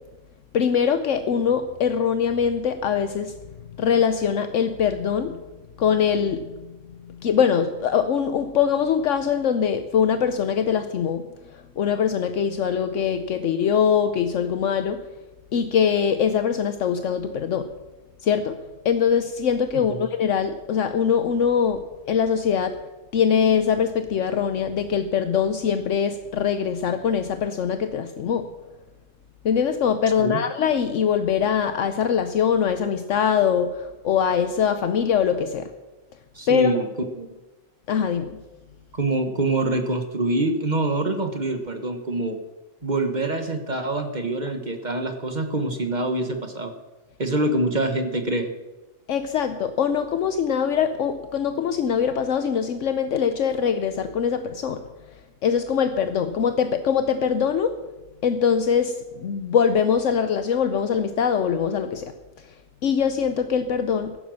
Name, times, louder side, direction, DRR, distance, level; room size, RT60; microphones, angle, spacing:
voice 1, 0.5-3.4 3.8-5.4 5.8-6.8 7.1-15.1 15.5-17.7 18.2-18.6 18.8-22.8 23.1-28.5 29.4-35.7 36.5-36.8 37.9-38.4 49.1-57.8 58.2-62.6 62.8-64.2, left 7 dB, 75° left, 9 dB, 1.1 m, -23 dB
voice 2, 36.3-36.9 37.2-37.3 39.0-42.4 42.8-46.7 47.2-48.5, right 2 dB, 35° right, 6 dB, 1.4 m, -25 dB
15.0 x 11.0 x 6.5 m, 1.1 s
omnidirectional pair, 1.3 m